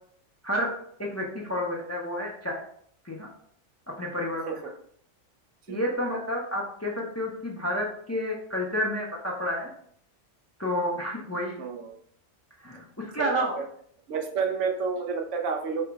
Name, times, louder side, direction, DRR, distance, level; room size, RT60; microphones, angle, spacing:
voice 1, 1.0-2.6 3.0-3.3 3.9-4.5 5.7-9.7 10.6-11.6 12.6-13.6, equal, 20° left, -1 dB, 0.4 m, -30 dB
voice 2, 11.6-12.0 13.2-13.7 14.1-15.9, right 5 dB, 85° right, 4 dB, 1.0 m, -30 dB
4.2 x 2.0 x 4.5 m, 0.63 s
omnidirectional pair, 1.2 m